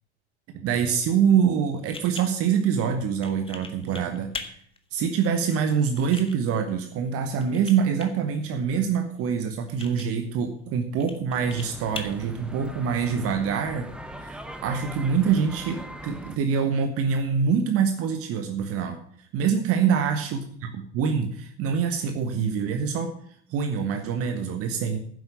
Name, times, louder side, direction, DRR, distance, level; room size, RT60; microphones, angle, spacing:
voice 1, 0.5-4.3 4.9-13.9 14.2-19.0 19.3-23.2 23.5-25.0, right 7 dB, 45° right, 6 dB, 1.4 m, -25 dB
sound 1, 1.2-13.3, left 4 dB, 15° left, 1.6 m, -44 dB
sound 2, 11.3-16.4, right 1 dB, 5° right, 1.2 m, -40 dB
10.0 x 8.0 x 6.9 m, 0.63 s
hypercardioid pair, 80°, 32 cm